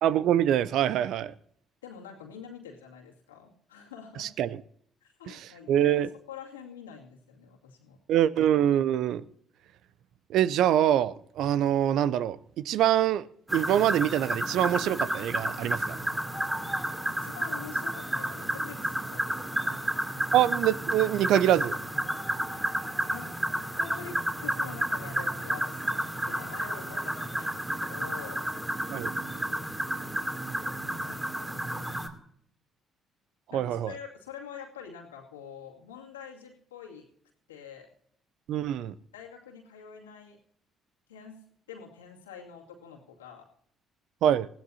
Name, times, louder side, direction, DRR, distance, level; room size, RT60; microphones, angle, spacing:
voice 1, 0.0-1.3 4.2-4.6 5.3-5.4 5.7-6.1 8.1-9.2 10.3-13.3 13.5-16.0 20.3-21.8 28.9-29.1 33.5-33.9 38.5-38.9 44.2-44.5, right 11 dB, 65° right, 0.5 m, -24 dB
voice 2, 1.8-4.3 5.0-6.0 6.3-8.0 17.2-19.8 23.1-23.3 23.8-28.5 30.9-32.0 33.5-37.1 37.5-37.9 39.1-40.4 41.1-41.4 41.7-43.5, left 7 dB, 85° left, 2.3 m, -46 dB
sound 1, 13.5-32.1, right 1 dB, 10° right, 2.7 m, -31 dB
20.0 x 16.5 x 2.8 m
hypercardioid pair, 50°, 0 cm